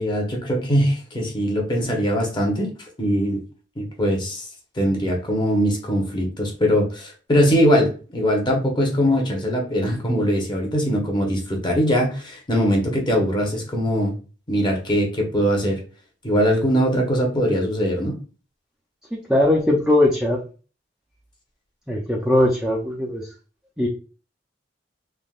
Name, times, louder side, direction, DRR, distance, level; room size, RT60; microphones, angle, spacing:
voice 1, 0.0-2.7 3.0-3.4 3.8-4.4 4.8-14.1 14.5-15.8 16.2-18.2, equal, 25° left, 0 dB, 0.8 m, -21 dB
voice 2, 19.1-20.4 21.9-23.3 23.8-23.9, left 1 dB, 5° right, -3 dB, 0.4 m, -20 dB
3.4 x 2.2 x 2.3 m, 0.35 s
head